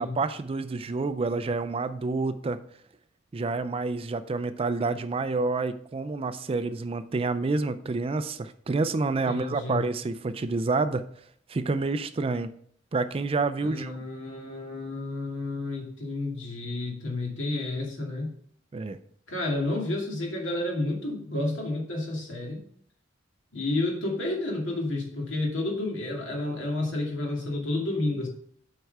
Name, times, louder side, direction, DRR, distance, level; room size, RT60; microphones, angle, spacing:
voice 1, 0.0-2.6 3.3-11.0 11.5-12.5 12.9-14.0 18.7-19.0, right 3 dB, 30° right, 12 dB, 0.4 m, -28 dB
voice 2, 9.3-9.8 13.6-18.3 19.3-22.6 23.5-28.3, left 2 dB, 65° left, 0 dB, 2.4 m, -30 dB
8.0 x 4.7 x 5.4 m, 0.63 s
head